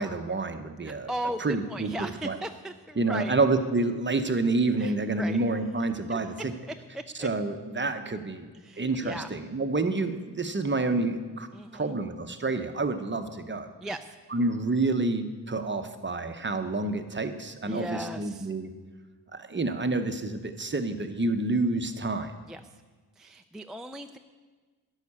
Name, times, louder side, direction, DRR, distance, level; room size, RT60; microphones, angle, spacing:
voice 1, 0.0-1.1 1.4-2.4 3.0-6.3 7.2-8.5 8.8-11.5 11.7-13.7 14.3-18.7 19.3-22.3, right 3 dB, 25° right, 7 dB, 0.8 m, -28 dB
voice 2, 0.8-3.3 4.8-5.4 6.1-6.2 6.9-7.3 8.5-9.3 11.5-12.0 13.8-14.2 17.6-18.5 22.5-22.8 23.2-24.2, right 1 dB, ahead, 6 dB, 0.3 m, -37 dB
13.0 x 6.5 x 9.7 m, 1.4 s
wide cardioid pair, 155°, 41 cm